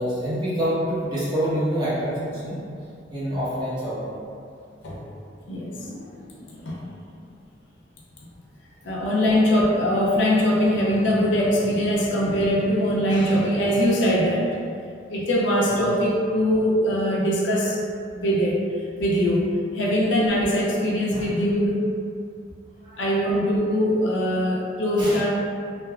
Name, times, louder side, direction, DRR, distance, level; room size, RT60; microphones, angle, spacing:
voice 1, 0.0-2.6 3.1-4.2 15.7-15.9 21.1-21.3 22.8-23.0 25.0-25.2, equal, 25° right, -11 dB, 0.9 m, -26 dB
voice 2, 5.5-6.8 8.8-14.5 15.1-18.6 19.0-19.5 19.7-21.8 23.0-25.3, equal, 75° left, -4 dB, 0.5 m, -22 dB
3.3 x 2.2 x 2.2 m, 2.3 s
head